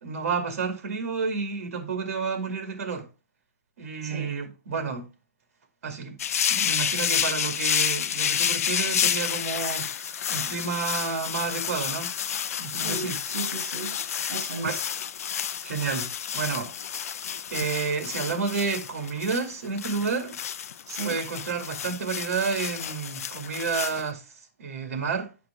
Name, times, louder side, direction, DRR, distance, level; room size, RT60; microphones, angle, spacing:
voice 1, 0.0-3.1 3.8-5.1 5.8-6.1 6.5-12.1 12.6-13.2 14.6-14.8 15.6-16.1 16.3-16.7 17.5-20.4 21.0-24.2 24.6-25.3, right 5 dB, 60° right, 2.3 m, -30 dB
voice 2, 4.0-4.3 12.8-14.0 14.3-14.8 20.9-21.2, right 4 dB, 85° right, 1.4 m, -35 dB
sound 1, 6.2-24.0, left 8 dB, 65° left, 0.5 m, -30 dB
9.1 x 5.1 x 3.4 m
hypercardioid pair, 175°, 9 cm